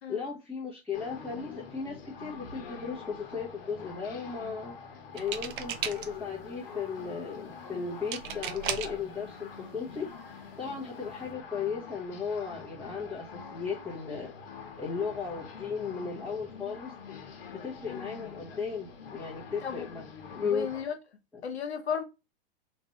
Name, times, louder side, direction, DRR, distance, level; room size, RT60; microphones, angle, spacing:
voice 1, 0.1-4.7 5.1-10.0 10.3-14.3 14.8-16.9 17.5-20.1 20.3-20.7, left 5 dB, 5° left, 0.8 m, -36 dB
sound 1, 0.9-20.8, left 6 dB, 65° left, 1.0 m, -45 dB
sound 2, 5.2-6.3 8.1-9.0 10.0-10.1 10.4-10.7, right 9 dB, 55° right, 0.6 m, -35 dB
voice 2, 20.5-20.9 21.4-22.0, left 7 dB, 90° left, 0.9 m, -34 dB
3.1 x 2.5 x 2.7 m
hypercardioid pair, 125°, 32 cm